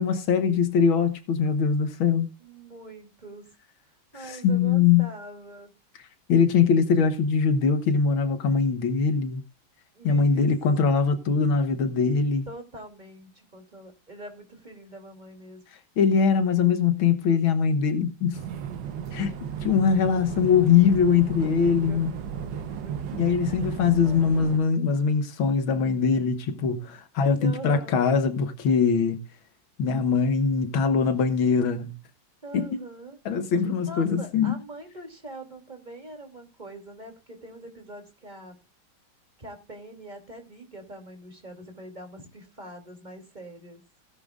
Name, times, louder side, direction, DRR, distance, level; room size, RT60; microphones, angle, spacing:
voice 1, 0.0-2.3 4.2-5.1 6.3-9.4 10.0-12.5 16.0-18.4 19.1-19.3 19.6-22.1 23.2-29.2 29.8-31.9 32.5-32.7 33.3-34.5, left 6 dB, 85° left, 2.0 m, -22 dB
voice 2, 2.4-3.4 4.1-5.7 9.9-10.5 10.8-11.0 12.5-15.6 21.3-23.0 23.4-24.7 27.3-28.1 32.4-33.2 33.9-38.5 39.4-43.8, right 2 dB, 20° right, 3.0 m, -43 dB
sound 1, 18.3-24.6, right 8 dB, 70° right, 1.6 m, -34 dB
17.0 x 10.5 x 2.5 m
omnidirectional pair, 2.2 m